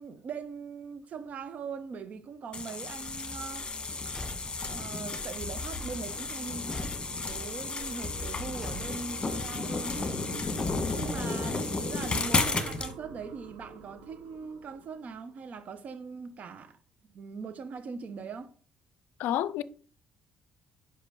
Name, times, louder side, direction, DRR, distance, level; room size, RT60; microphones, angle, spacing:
voice 1, 0.0-3.7 4.2-4.3 4.6-10.3 10.9-16.8 17.1-18.5, right 5 dB, 55° right, 0.9 m, -41 dB
sound 1, 2.5-12.9, left 3 dB, 30° left, 1.6 m, -33 dB
Car / Truck / Slam, 4.1-4.8 6.1-7.5 8.6-9.4 10.5-11.2 12.3-13.0, left 2 dB, 10° left, 0.9 m, -44 dB
sound 2, 5.6-15.6, right 6 dB, 85° right, 0.9 m, -47 dB
voice 2, 19.2-19.6, left 11 dB, 75° left, 0.4 m, -30 dB
5.8 x 5.1 x 5.2 m
supercardioid pair, 60°, 3 cm